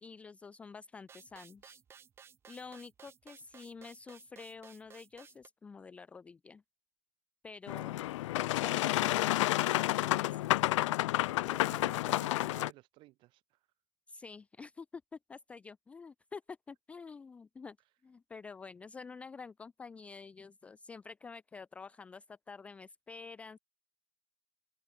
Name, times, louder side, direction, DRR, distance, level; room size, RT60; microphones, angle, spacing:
voice 1, 0.0-1.8 2.5-6.6 7.4-8.0 8.5-10.4 14.1-15.0 15.3-17.8 18.0-23.6, left 5 dB, 5° left, 0.7 m, -49 dB
sound 1, 1.1-5.5, right 7 dB, 15° right, 3.5 m, -57 dB
Boat Water vehicle, 7.7-12.7, left 16 dB, 65° left, 0.4 m, -30 dB
voice 2, 11.3-13.6, right 19 dB, 30° right, 3.3 m, -55 dB
supercardioid pair, 175°, 17 cm